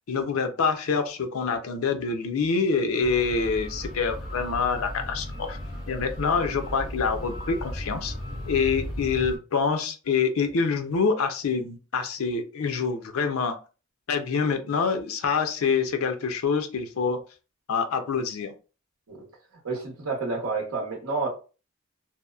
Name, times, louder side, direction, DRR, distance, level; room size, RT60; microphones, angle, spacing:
voice 1, 0.1-5.6 5.9-8.1 8.5-13.6 14.1-17.2 17.7-18.5, left 5 dB, 85° left, 7 dB, 0.5 m, -26 dB
sound 1, 3.0-9.4, equal, ahead, 0.8 m, -36 dB
voice 2, 19.6-21.3, right 3 dB, 80° right, -1 dB, 0.8 m, -29 dB
2.7 x 2.0 x 2.3 m, 0.34 s
head